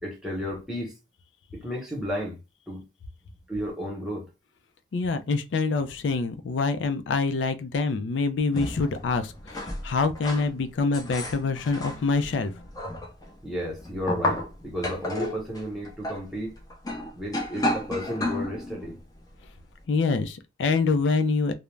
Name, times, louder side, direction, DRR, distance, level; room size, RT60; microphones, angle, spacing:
voice 1, 0.0-0.9 1.5-2.4 2.7-2.8 3.5-4.3 13.4-16.6 17.1-19.0, equal, 5° right, 0.9 m, -33 dB
voice 2, 4.9-12.6 19.9-21.5, left 4 dB, 85° left, 0.4 m, -26 dB
sound 1, 8.5-10.5 10.9-19.0 19.4-19.5, left 1 dB, 20° left, 0.5 m, -32 dB
2.4 x 2.0 x 3.1 m
head